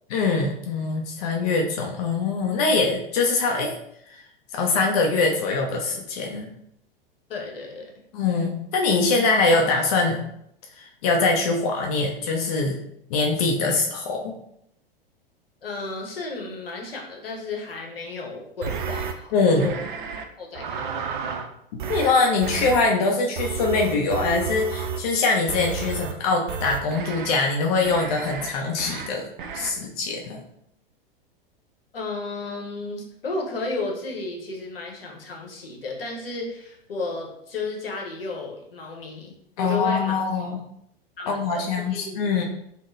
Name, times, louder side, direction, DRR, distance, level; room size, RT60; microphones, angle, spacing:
voice 1, 0.1-3.7 4.1-4.2 4.5-6.5 8.1-10.2 10.8-12.8 13.1-14.3 19.3-19.7 21.9-29.3 29.5-30.4 39.6-40.6 41.3-42.4, left 3 dB, 40° left, 1 dB, 0.4 m, -23 dB
voice 2, 7.3-7.9 15.6-19.3 19.5-19.8 20.4-21.1 31.9-40.2 41.2-42.3, left 3 dB, 70° left, 0 dB, 0.8 m, -33 dB
sound 1, 18.6-19.1 19.6-20.2 20.6-21.5 21.8-22.1 22.4-22.8 23.4-25.1 25.5-26.1 26.5-27.4 27.9-28.5 28.8-29.1 29.4-29.7, right 6 dB, 60° right, 0.4 m, -31 dB
3.5 x 2.0 x 2.4 m, 0.73 s
figure-of-eight pair, 95°, 30 cm